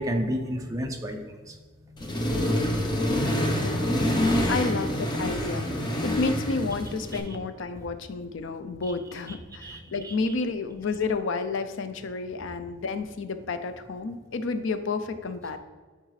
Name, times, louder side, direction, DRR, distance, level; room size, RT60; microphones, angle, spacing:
voice 1, 0.0-1.5 9.6-10.1, equal, 15° right, 3 dB, 0.6 m, -31 dB
Accelerating revving vroom, 2.0-7.2, equal, 20° left, 0.7 m, -26 dB
voice 2, 3.5-4.0 4.5-5.7 6.0-15.6, left 4 dB, 65° left, 10 dB, 0.5 m, -31 dB
10.0 x 3.7 x 3.2 m, 1.5 s
head